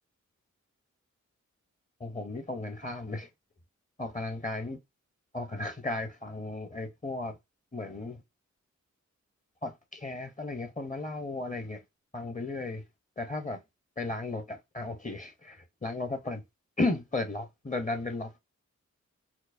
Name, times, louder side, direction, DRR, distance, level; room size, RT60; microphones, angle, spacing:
voice 1, 2.0-3.3 4.0-4.8 5.3-7.4 7.7-8.2 9.6-11.8 12.1-12.8 13.2-13.6 14.0-16.4 16.8-18.4, left 2 dB, 25° left, 0.7 m, -35 dB
4.5 x 2.1 x 2.5 m
cardioid pair, 65°, 30 cm